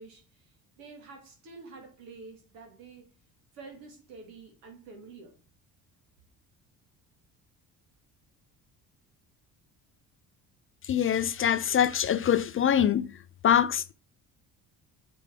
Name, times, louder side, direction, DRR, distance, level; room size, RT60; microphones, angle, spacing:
voice 1, 0.0-3.1 3.5-5.4, right 4 dB, 90° right, 1.9 m, -48 dB
voice 2, 10.9-13.1 13.4-13.9, left 9 dB, 35° left, 0.4 m, -24 dB
6.9 x 4.7 x 3.4 m
supercardioid pair, 65°, 42 cm